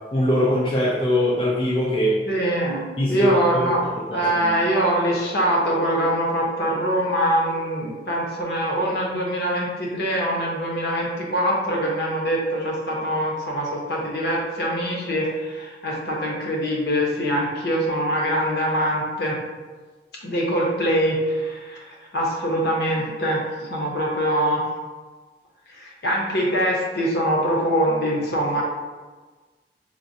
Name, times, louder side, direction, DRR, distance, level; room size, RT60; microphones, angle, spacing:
voice 1, 0.1-2.2 3.0-3.7 4.1-4.6, left 1 dB, 30° left, -5 dB, 0.4 m, -22 dB
voice 2, 2.3-2.8 3.1-3.8 4.1-19.4 20.2-24.6 25.7-28.6, equal, 60° left, -3 dB, 0.7 m, -23 dB
4.5 x 2.1 x 2.6 m, 1.3 s
head